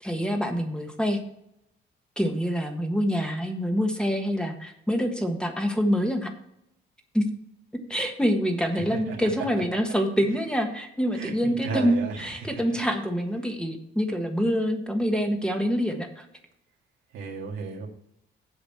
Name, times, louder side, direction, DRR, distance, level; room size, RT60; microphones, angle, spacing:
voice 1, 0.0-1.2 2.2-6.3 7.1-7.2 7.9-16.2, equal, 5° left, 4 dB, 1.4 m, -26 dB
voice 2, 8.7-9.2 10.2-10.3 11.1-12.8 17.1-17.9, right 4 dB, 85° right, 0 dB, 2.0 m, -35 dB
8.1 x 5.0 x 7.2 m, 0.77 s
cardioid pair, 90°, 20 cm